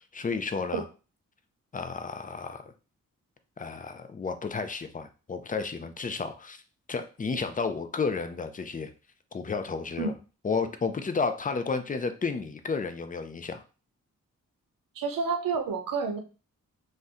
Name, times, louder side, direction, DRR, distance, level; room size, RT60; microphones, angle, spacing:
voice 1, 0.1-0.8 1.7-2.7 3.6-6.6 6.9-8.9 9.3-10.1 10.4-13.6, left 4 dB, 25° left, 8 dB, 0.5 m, -32 dB
voice 2, 15.0-16.2, right 5 dB, 80° right, 6 dB, 0.6 m, -29 dB
2.6 x 2.2 x 3.6 m, 0.34 s
cardioid pair, 45°, 33 cm